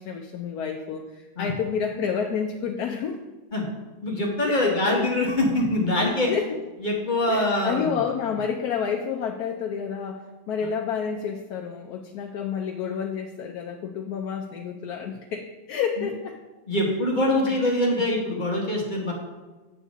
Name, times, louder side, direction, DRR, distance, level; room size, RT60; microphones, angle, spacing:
voice 1, 0.0-3.2 4.4-5.0 5.9-6.6 7.3-16.4 17.5-17.8, left 7 dB, 85° left, 2 dB, 1.2 m, -30 dB
voice 2, 4.0-6.3 6.8-8.0 16.7-19.1, left 1 dB, 35° left, -1 dB, 1.4 m, -24 dB
8.4 x 7.2 x 3.6 m, 1.2 s
omnidirectional pair, 1.6 m